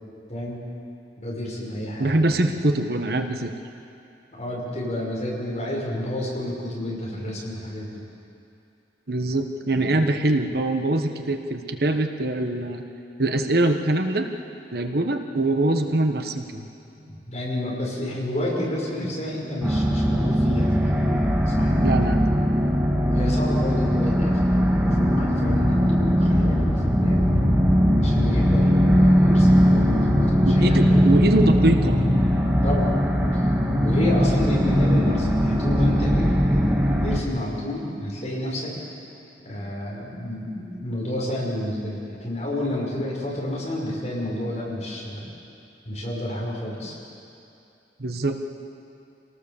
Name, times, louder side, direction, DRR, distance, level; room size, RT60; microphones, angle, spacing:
voice 1, 0.3-0.6 1.2-2.4 4.3-8.0 9.6-10.1 14.9-15.0 17.0-22.1 22.9-27.3 28.0-31.2 32.6-32.9 33.3-33.4 33.7-38.7 39.4-45.3 45.8-47.0, left 1 dB, 40° left, -4 dB, 5.9 m, -30 dB
voice 2, 2.0-3.5 9.1-12.8 13.2-14.3 14.7-16.7 21.8-22.2 30.4-32.0 48.0-48.4, right 2 dB, 60° right, 6 dB, 1.2 m, -23 dB
sound 1, 19.6-37.2, equal, 10° right, 1.8 m, -20 dB
sound 2, 25.9-35.9, equal, 30° right, 5.3 m, -41 dB
28.0 x 18.5 x 7.1 m, 2.7 s
head